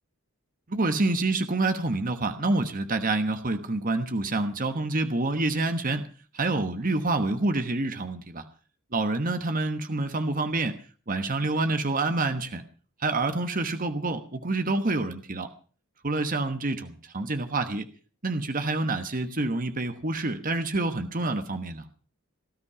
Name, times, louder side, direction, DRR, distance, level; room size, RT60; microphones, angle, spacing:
voice 1, 0.7-6.1 6.3-8.5 8.9-10.8 11.1-12.6 13.0-15.5 16.0-17.9 18.2-21.9, right 2 dB, 40° right, 8 dB, 1.2 m, -27 dB
18.5 x 13.0 x 5.8 m, 0.40 s
head